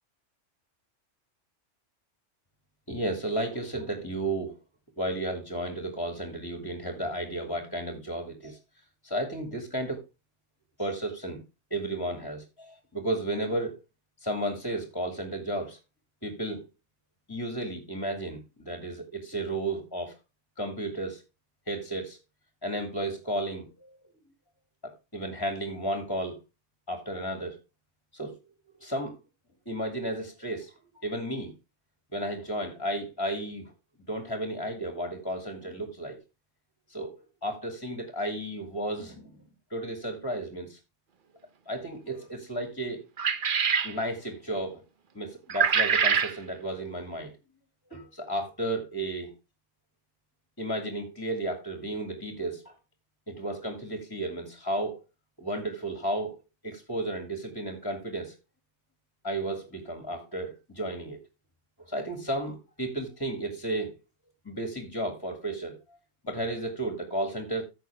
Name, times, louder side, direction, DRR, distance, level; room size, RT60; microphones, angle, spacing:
voice 1, 2.9-4.5 5.0-8.6 9.0-10.0 10.8-11.4 11.7-13.8 14.2-15.8 16.2-16.6 17.3-20.1 20.6-21.2 21.7-22.2 22.6-23.9 24.8-26.4 26.9-27.6 28.1-28.3 28.8-29.2 29.7-30.7 31.0-31.5 32.1-33.7 34.1-36.2 36.9-37.1 37.4-39.3 39.7-40.8 41.7-43.0 43.8-44.8 45.1-47.3 47.9-49.3 50.6-52.7 53.3-55.0 55.4-56.3 56.6-58.3 59.2-61.2 61.9-63.9 64.5-65.8 66.2-67.6, right 1 dB, 20° left, 2.1 m, -33 dB
sound 1, 43.2-43.9 45.5-46.3, right 6 dB, 45° right, 0.9 m, -24 dB
14.5 x 6.2 x 3.4 m
omnidirectional pair, 1.3 m